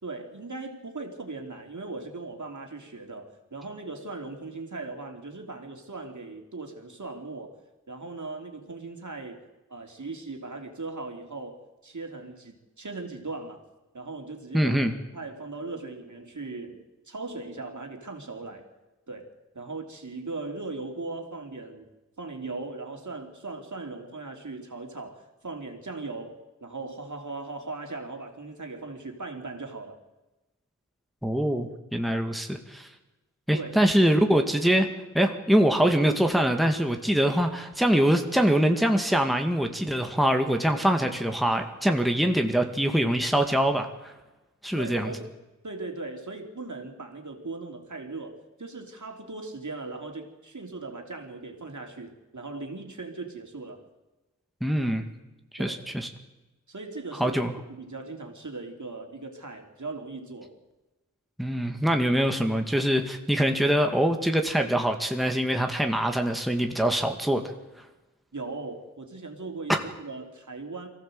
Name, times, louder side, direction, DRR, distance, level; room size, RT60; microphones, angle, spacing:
voice 1, 0.0-7.6 7.9-9.4 9.7-13.6 13.9-14.8 15.1-18.7 19.1-21.9 22.2-30.0 33.5-33.8 34.7-34.9 44.7-45.3 45.6-53.9 55.6-55.8 56.7-57.4 57.7-60.5 68.3-70.9, right 3 dB, 65° right, 3 dB, 3.2 m, -38 dB
voice 2, 14.5-14.9 31.2-32.9 33.5-34.9 35.1-44.1 44.6-45.1 54.6-55.0 55.5-56.1 57.2-57.5 61.4-67.5 69.7-69.8, equal, ahead, 4 dB, 2.2 m, -24 dB
23.0 x 16.0 x 7.9 m, 1.1 s
wide cardioid pair, 45°, 32 cm